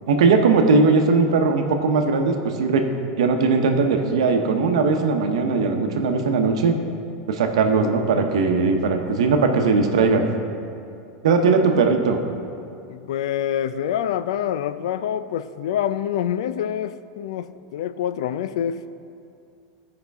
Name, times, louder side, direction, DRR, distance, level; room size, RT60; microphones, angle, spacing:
voice 1, 0.1-2.9 3.2-6.8 7.3-10.3 11.2-12.2, right 4 dB, 90° right, 4 dB, 0.9 m, -19 dB
voice 2, 12.9-18.8, left 10 dB, 75° left, 13 dB, 0.3 m, -26 dB
14.0 x 5.2 x 3.5 m, 2.6 s
supercardioid pair, 170°, 3 cm